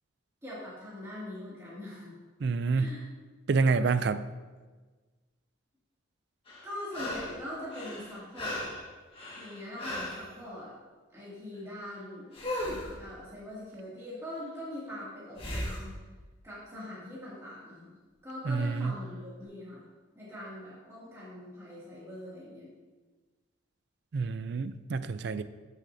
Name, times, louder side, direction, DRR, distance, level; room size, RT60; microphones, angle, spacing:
voice 1, 0.4-2.1 2.7-3.0 3.7-3.9 6.6-8.8 9.3-10.8 11.1-15.9 16.4-18.0 18.2-19.8 20.1-22.7, left 1 dB, 15° right, -9 dB, 2.3 m, -42 dB
voice 2, 2.4-2.9 3.5-4.3 18.5-18.9 24.1-25.4, right 4 dB, 55° right, 13 dB, 0.4 m, -28 dB
sound 1, 6.5-7.4 7.7-10.3 12.3-13.0 15.4-15.9 18.8-18.9, left 1 dB, 25° left, 1.7 m, -37 dB
13.0 x 6.6 x 2.7 m, 1.3 s
head